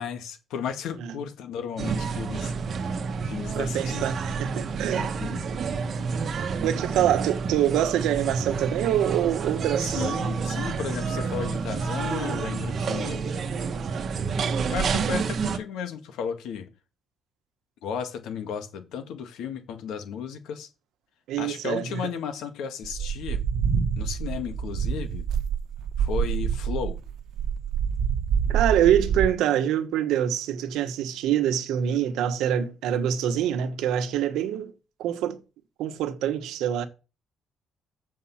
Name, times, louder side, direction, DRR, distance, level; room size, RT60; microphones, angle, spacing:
voice 1, 0.0-2.5 3.2-4.1 4.9-5.5 9.8-13.2 14.7-16.7 17.8-20.7 21.4-23.4 24.0-25.3 26.0-27.0, left 7 dB, 80° left, 1.9 m, -34 dB
sound 1, 1.8-15.6, right 5 dB, 40° right, 1.1 m, -29 dB
voice 2, 3.5-5.1 6.6-10.1 21.3-22.0 28.5-34.7 35.0-35.4 35.8-36.9, right 10 dB, 85° right, 1.2 m, -25 dB
sound 2, 22.8-29.3, right 7 dB, 65° right, 1.1 m, -27 dB
7.6 x 5.5 x 7.2 m
cardioid pair, 145°, 0 cm